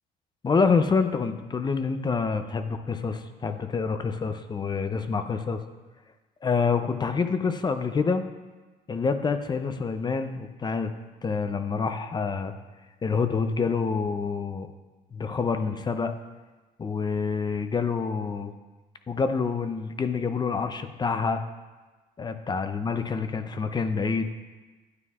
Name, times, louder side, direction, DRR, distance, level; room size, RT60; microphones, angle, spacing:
voice 1, 0.4-5.6 6.4-8.2 8.9-10.9 11.2-12.5 13.0-14.7 15.1-16.1 16.8-18.5 19.1-21.4 22.2-24.3, left 5 dB, 25° left, 8 dB, 0.5 m, -27 dB
9.6 x 9.0 x 2.4 m, 1.2 s
cardioid pair, 110°, 17 cm